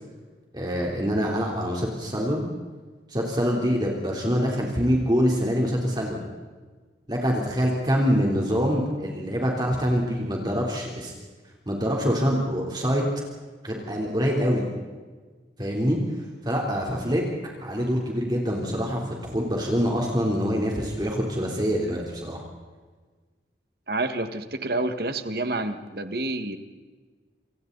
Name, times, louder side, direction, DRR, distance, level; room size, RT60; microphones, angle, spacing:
voice 1, 0.5-2.5 3.1-6.2 7.1-11.1 11.7-13.0 13.6-14.7 15.6-16.0 16.4-17.2 17.6-22.4, equal, 25° right, -1 dB, 3.6 m, -25 dB
voice 2, 23.9-26.6, right 2 dB, 60° right, 8 dB, 1.8 m, -28 dB
28.0 x 27.0 x 4.1 m, 1.4 s
head